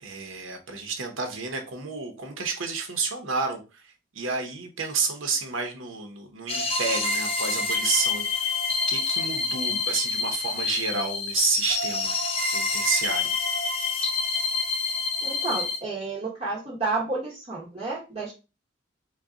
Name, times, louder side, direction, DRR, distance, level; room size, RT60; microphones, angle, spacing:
voice 1, 0.0-3.9 4.1-8.5 8.9-12.2 12.5-13.3, right 4 dB, 85° right, 4 dB, 0.9 m, -30 dB
sound 1, 6.5-15.8, left 4 dB, 30° left, 0.6 m, -27 dB
voice 2, 15.2-18.3, right 3 dB, 30° right, -5 dB, 0.9 m, -31 dB
4.0 x 2.3 x 3.6 m, 0.30 s
head